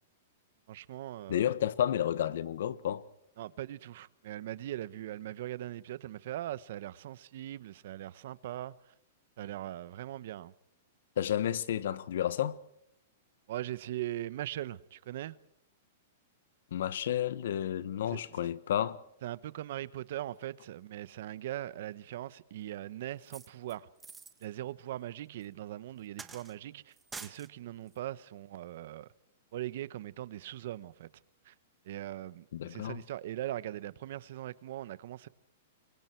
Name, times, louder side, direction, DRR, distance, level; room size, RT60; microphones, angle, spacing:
voice 1, 0.7-1.5 3.4-8.9 9.4-10.5 13.5-15.4 18.1-18.2 19.2-23.9 24.4-26.9 27.2-29.1 29.5-31.1 31.4-31.5 31.8-35.3, right 13 dB, 60° right, 1.0 m, -40 dB
voice 2, 1.3-3.0 11.2-12.6 16.7-19.0 32.5-33.0, left 10 dB, 70° left, 1.3 m, -31 dB
sound 1, 23.2-24.5 25.4-25.5 26.2-26.6 26.9-27.5 27.9-28.0, right 4 dB, 10° right, 1.4 m, -47 dB
28.0 x 23.5 x 4.6 m
hypercardioid pair, 155°, 0 cm